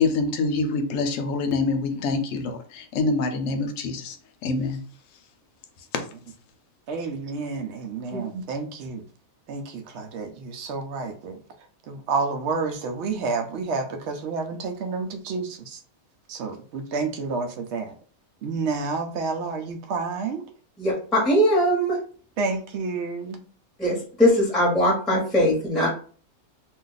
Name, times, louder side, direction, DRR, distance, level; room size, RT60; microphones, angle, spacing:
voice 1, 0.0-4.2 4.4-4.8 5.9-6.0, left 3 dB, 70° left, 0.9 m, -25 dB
voice 2, 6.9-9.0 9.5-11.4 11.9-15.8 16.3-17.9 18.4-20.4 22.4-23.4, right 4 dB, 65° right, 0.7 m, -29 dB
voice 3, 20.8-22.0 23.8-25.9, equal, ahead, 0.9 m, -21 dB
2.5 x 2.4 x 3.8 m
omnidirectional pair, 1.5 m